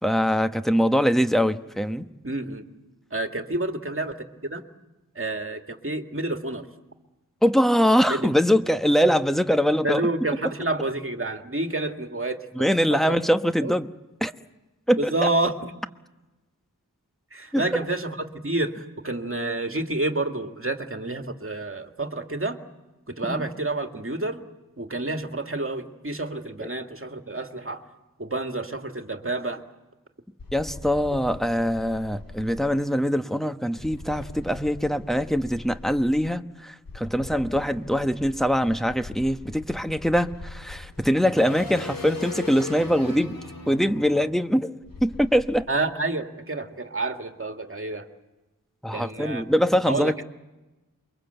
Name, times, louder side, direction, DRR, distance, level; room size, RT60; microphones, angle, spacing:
voice 1, 0.0-2.1 7.4-10.0 12.5-13.9 14.2-14.3 14.9-15.3 17.5-17.6 23.3-23.6 26.6-26.7 30.5-43.3 43.7-44.7 45.0-45.7 48.8-50.2, equal, ahead, 9 dB, 1.0 m, -23 dB
voice 2, 2.2-2.6 3.1-4.2 4.4-4.6 5.2-6.7 8.1-8.3 9.8-13.2 13.6-13.7 15.0-15.6 17.3-22.6 23.1-24.4 24.8-27.8 28.2-29.6 45.7-48.1 48.9-49.4 49.9-50.2, right 2 dB, 40° right, 5 dB, 2.1 m, -29 dB
sound 1, 30.4-32.7 33.8-36.3 36.9-45.6, left 2 dB, 85° left, 2.6 m, -40 dB
28.5 x 23.5 x 8.1 m, 1.1 s
wide cardioid pair, 65°, 33 cm